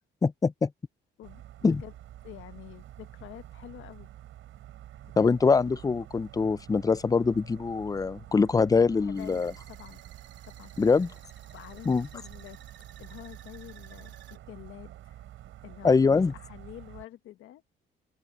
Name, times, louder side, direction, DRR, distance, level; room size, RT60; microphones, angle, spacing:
voice 1, 0.2-0.7 1.6-1.8 5.2-9.5 10.8-11.1 11.9-12.1 15.8-16.3, left 4 dB, 20° left, 0.5 m, -23 dB
voice 2, 1.2-1.9 2.2-4.1 5.0-5.3 9.0-10.0 10.4-10.9 11.5-12.6 13.0-15.2 15.6-17.6, left 13 dB, 85° left, 1.4 m, -47 dB
sound 1, 1.2-17.0, right 13 dB, 80° right, 6.4 m, -48 dB
sound 2, 9.1-14.4, right 9 dB, 65° right, 2.6 m, -55 dB
open air
cardioid pair, 90°, 20 cm